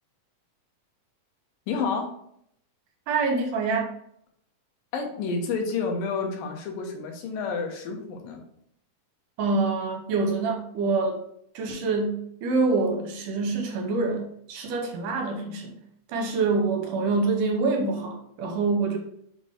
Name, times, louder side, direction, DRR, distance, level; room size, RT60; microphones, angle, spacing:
voice 1, 1.7-2.1 4.9-8.4, left 4 dB, 85° left, 2 dB, 2.8 m, -29 dB
voice 2, 3.1-3.9 9.4-11.2 11.5-15.7 16.1-19.0, right 3 dB, 70° right, 2 dB, 2.4 m, -26 dB
6.1 x 4.3 x 3.6 m, 0.70 s
omnidirectional pair, 4.0 m